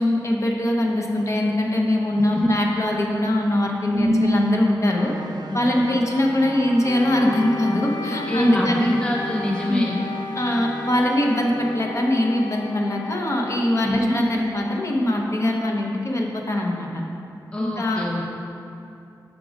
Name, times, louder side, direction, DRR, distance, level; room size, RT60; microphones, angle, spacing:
voice 1, 0.0-5.1 5.5-9.0 9.7-10.0 10.4-16.9 17.8-18.1, left 1 dB, 40° left, 0 dB, 0.7 m, -22 dB
voice 2, 3.9-4.4 5.5-5.8 8.3-9.9 13.8-14.2 17.5-18.4, left 1 dB, 15° left, -1 dB, 0.4 m, -24 dB
sound 1, 4.9-11.5, right 4 dB, 65° right, 0.4 m, -39 dB
Wind instrument woodwind instrument, 6.8-14.9, left 4 dB, 85° left, 0.3 m, -35 dB
6.0 x 3.7 x 5.0 m, 2.6 s
wide cardioid pair, 110°, 8 cm